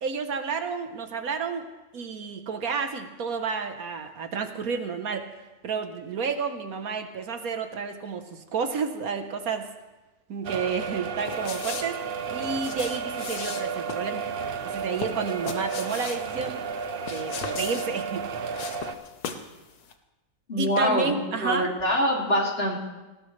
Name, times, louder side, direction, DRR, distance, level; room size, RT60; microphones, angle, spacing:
voice 1, 0.0-1.7 1.9-5.3 5.6-9.7 10.3-12.0 12.3-14.3 14.6-16.6 17.1-18.3 20.6-21.7, right 5 dB, 70° right, 7 dB, 1.5 m, -31 dB
sound 1, 10.4-18.9, right 5 dB, 50° right, 0.8 m, -33 dB
sound 2, 11.3-19.6 19.8-19.9, left 6 dB, 90° left, 1.6 m, -38 dB
voice 2, 20.5-22.9, equal, 40° left, -2 dB, 2.9 m, -25 dB
19.5 x 17.0 x 3.3 m, 1.1 s
omnidirectional pair, 1.6 m